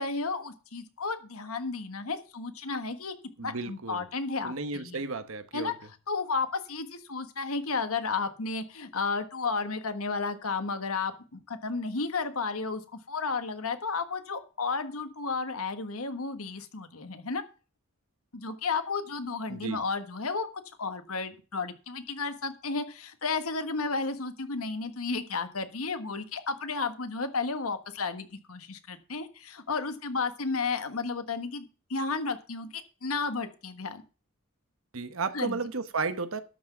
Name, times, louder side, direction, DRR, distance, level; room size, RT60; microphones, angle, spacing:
voice 1, 0.0-3.1 3.4-5.0 5.5-5.7 6.1-17.4 18.3-20.5 20.8-34.0 35.3-35.6, left 4 dB, 90° left, 1.5 m, -33 dB
voice 2, 3.4-4.0 4.4-5.7 19.5-19.8 34.9-36.4, right 4 dB, 70° right, 1.0 m, -33 dB
12.5 x 6.1 x 6.0 m
head